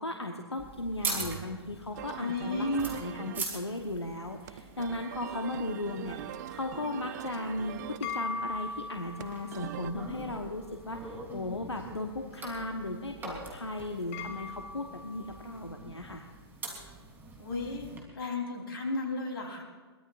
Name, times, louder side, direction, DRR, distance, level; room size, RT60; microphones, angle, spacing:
voice 1, 0.0-16.2, left 2 dB, 85° left, 4 dB, 1.2 m, -36 dB
sound 1, 0.6-18.0, right 3 dB, 15° right, 3.7 m, -44 dB
sound 2, 2.0-9.9, right 12 dB, 40° right, 0.6 m, -43 dB
voice 2, 2.2-2.9 17.4-19.6, left 2 dB, 60° left, 1 dB, 3.8 m, -33 dB
sound 3, 7.5-15.9, left 3 dB, 35° left, 1.6 m, -43 dB
23.0 x 20.0 x 2.6 m, 1.5 s
figure-of-eight pair, 115°, 14 cm